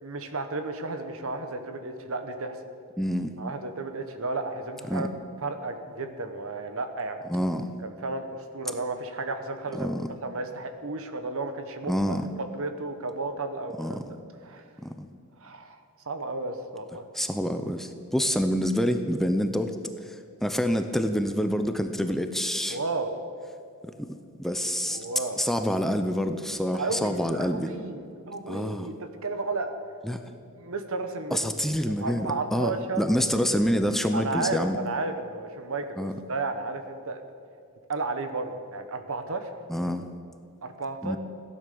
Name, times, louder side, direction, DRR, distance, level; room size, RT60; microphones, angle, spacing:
voice 1, 0.0-2.6 3.4-5.1 5.4-7.2 7.8-9.9 10.2-14.0 14.4-14.6 15.4-17.1 22.7-23.2 24.9-25.4 26.7-29.7 30.6-31.5 31.8-33.1 34.1-37.2 37.9-39.5 40.6-41.2, right 3 dB, 65° right, 8 dB, 1.2 m, -33 dB
voice 2, 3.0-3.3 4.9-5.1 7.3-7.7 9.7-10.1 11.9-12.3 13.8-14.1 14.8-15.1 17.1-19.8 20.1-22.8 23.8-25.0 25.4-27.7 28.5-28.9 30.0-30.2 31.3-34.8 36.0-36.1 39.7-40.1 41.0-41.2, equal, ahead, 7 dB, 0.6 m, -27 dB
15.5 x 10.5 x 6.9 m, 2.3 s
head